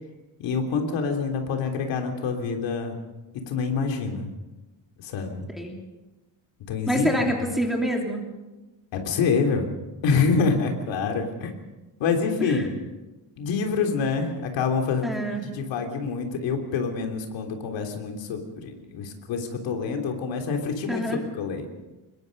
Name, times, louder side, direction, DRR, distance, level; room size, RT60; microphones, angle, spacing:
voice 1, 0.4-2.9 3.5-4.3 5.0-5.5 6.7-7.1 8.9-9.7 10.0-11.5 12.0-12.7 13.4-21.7, left 5 dB, 80° left, 3 dB, 3.4 m, -26 dB
voice 2, 6.9-8.2 12.4-12.7 15.0-15.4 20.9-21.2, equal, ahead, 0 dB, 3.1 m, -26 dB
25.5 x 21.5 x 5.4 m, 1.1 s
cardioid pair, 170°, 44 cm